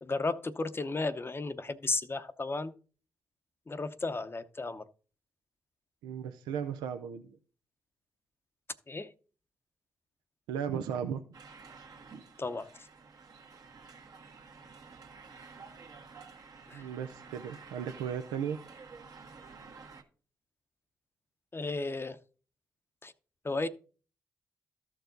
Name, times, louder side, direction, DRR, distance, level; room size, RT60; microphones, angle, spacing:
voice 1, 0.0-2.7 3.7-4.8 8.9-9.1 12.4-12.7 16.7-16.8 21.5-22.2 23.0-23.1 23.4-23.7, left 3 dB, 30° left, 0.7 m, -34 dB
voice 2, 6.0-7.4 10.5-11.2 16.7-18.6, right 8 dB, 90° right, 0.5 m, -36 dB
sound 1, 11.3-20.0, right 5 dB, 60° right, 1.4 m, -51 dB
13.5 x 4.6 x 3.9 m
supercardioid pair, 45°, 7 cm